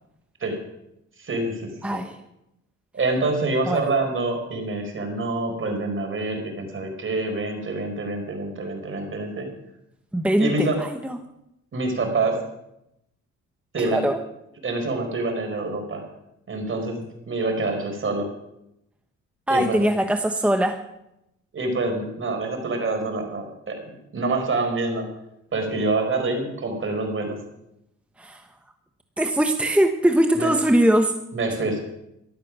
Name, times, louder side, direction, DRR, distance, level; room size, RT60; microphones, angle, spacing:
voice 1, 1.2-2.0 2.9-9.5 10.4-10.8 11.7-12.4 13.7-14.0 14.6-16.0 16.5-17.0 17.3-18.3 19.5-19.8 21.5-23.8 24.1-25.1 25.5-27.4 30.4-30.5 31.3-31.8, right 2 dB, 45° right, 4 dB, 4.7 m, -26 dB
voice 2, 1.8-2.2 3.7-3.8 10.1-11.2 13.8-14.2 19.5-20.8 28.2-28.4 29.2-31.1, right 1 dB, 5° right, 6 dB, 1.1 m, -21 dB
14.0 x 12.0 x 6.3 m, 0.84 s
cardioid pair, 90°, 30 cm